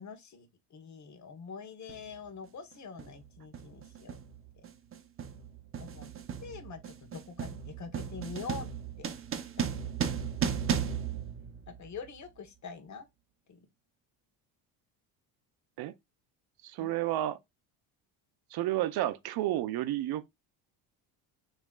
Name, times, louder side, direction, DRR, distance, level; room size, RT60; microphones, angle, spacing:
voice 1, 0.0-4.2 5.8-6.1 6.4-8.7 9.0-9.1 9.6-9.9 11.7-13.1 13.5-13.7 16.8-16.9, left 5 dB, 40° left, 1.2 m, -45 dB
sound 1, 1.9-2.1 3.0-3.3 3.5-12.1, right 8 dB, 30° right, 0.9 m, -35 dB
voice 2, 16.6-17.4 18.5-20.2, right 14 dB, 65° right, 0.6 m, -31 dB
7.1 x 3.1 x 2.4 m
cardioid pair, 115°, 42 cm